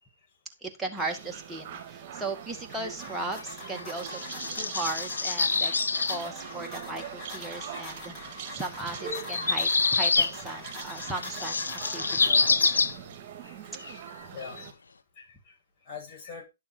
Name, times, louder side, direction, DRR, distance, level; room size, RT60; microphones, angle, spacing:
voice 1, 0.6-5.7 6.1-12.9, right 2 dB, 5° right, 0 dB, 2.1 m, -37 dB
sound 1, 1.0-14.7, right 8 dB, 35° right, 3.2 m, -43 dB
sound 2, 2.5-13.1, left 1 dB, 15° left, 6.6 m, -43 dB
sound 3, 3.7-6.2 7.7-7.8 9.1-10.3 10.8-13.0 13.8-13.9 14.4-14.6, left 4 dB, 85° left, 1.3 m, -26 dB
voice 2, 14.3-14.7 15.2-15.6 15.9-16.4, left 6 dB, 35° left, -1 dB, 7.1 m, -44 dB
11.0 x 6.9 x 4.5 m, 0.25 s
hypercardioid pair, 145°, 0 cm